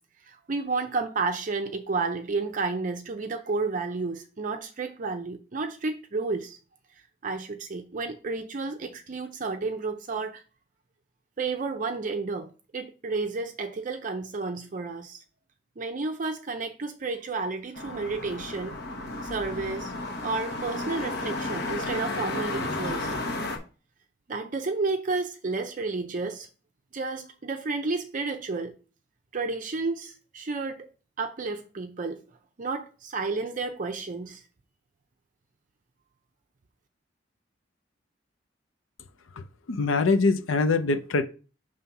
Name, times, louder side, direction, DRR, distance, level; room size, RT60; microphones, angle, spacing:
voice 1, 0.2-6.6 7.2-10.4 11.4-15.2 15.8-18.8 19.2-19.9 20.2-23.1 24.3-26.5 26.9-28.7 29.3-30.9 31.2-32.2 32.6-34.4, right 3 dB, 40° right, 0.5 m, -31 dB
sound 1, 17.7-23.6, left 2 dB, 55° left, 1.1 m, -33 dB
voice 2, 39.7-41.2, left 3 dB, 90° left, 0.6 m, -23 dB
5.5 x 3.3 x 5.7 m
head